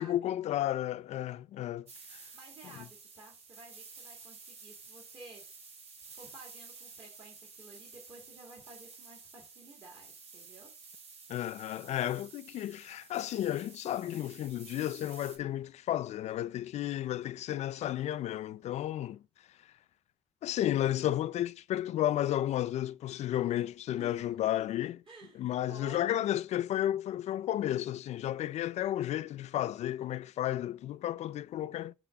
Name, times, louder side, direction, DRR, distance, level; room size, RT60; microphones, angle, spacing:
voice 1, 0.0-2.3 11.3-19.2 20.4-25.0 25.4-31.9, left 12 dB, 80° left, 0.4 m, -33 dB
sound 1, 1.9-15.4, right 4 dB, 70° right, 2.7 m, -52 dB
voice 2, 2.3-5.4 6.0-10.7 24.0-24.3 25.1-25.4 25.7-26.3, right 2 dB, 50° right, 2.2 m, -53 dB
8.1 x 3.4 x 5.8 m
wide cardioid pair, 170°, 11 cm